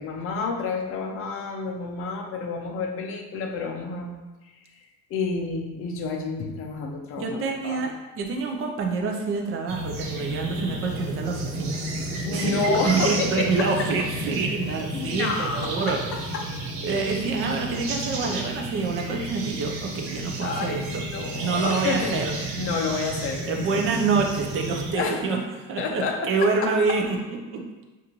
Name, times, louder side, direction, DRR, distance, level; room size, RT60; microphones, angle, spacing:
voice 1, 0.0-4.1 5.1-7.8 12.3-13.9 14.9-16.4 18.2-18.4 20.4-22.1 22.5-24.0 24.9-25.3 25.8-26.7, left 4 dB, 35° left, 2 dB, 0.6 m, -30 dB
voice 2, 7.2-16.0 16.8-21.0 21.3-22.3 23.5-25.4 25.7-27.7, right 4 dB, 30° right, 2 dB, 0.6 m, -27 dB
sound 1, 9.7-24.9, right 1 dB, 85° right, 1.2 m, -32 dB
6.3 x 2.6 x 2.9 m, 1.2 s
cardioid pair, 160°, 40 cm